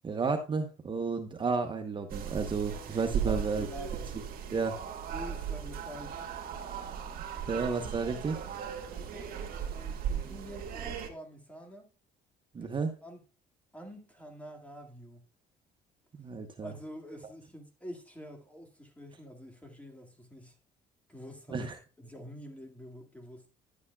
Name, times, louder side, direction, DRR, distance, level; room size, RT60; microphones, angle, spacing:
voice 1, 0.0-3.7 4.5-4.8 7.5-8.4 12.5-12.9 16.2-16.7 21.5-21.8, right 4 dB, 30° right, 0.9 m, -32 dB
sound 1, 2.1-11.1, right 8 dB, 60° right, 2.0 m, -37 dB
voice 2, 3.3-4.1 5.1-6.2 8.9-11.9 12.6-12.8 13.0-13.2 13.7-15.2 16.6-20.6 21.1-21.7 22.0-23.5, equal, 10° left, 2.1 m, -47 dB
11.0 x 8.4 x 2.3 m
cardioid pair, 110°, 17 cm